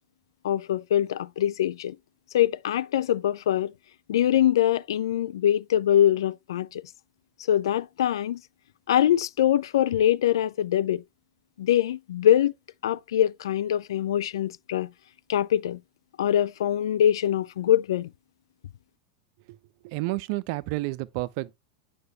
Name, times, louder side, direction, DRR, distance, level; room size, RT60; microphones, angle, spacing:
voice 1, 0.4-2.0 2.3-3.7 4.1-6.8 7.5-8.4 8.9-11.0 11.6-12.5 12.8-14.9 15.3-15.8 16.2-18.1, left 11 dB, 65° left, 0.4 m, -23 dB
voice 2, 19.8-21.5, right 19 dB, 50° right, 0.6 m, -30 dB
9.3 x 5.3 x 3.3 m
figure-of-eight pair, 90°, 3 cm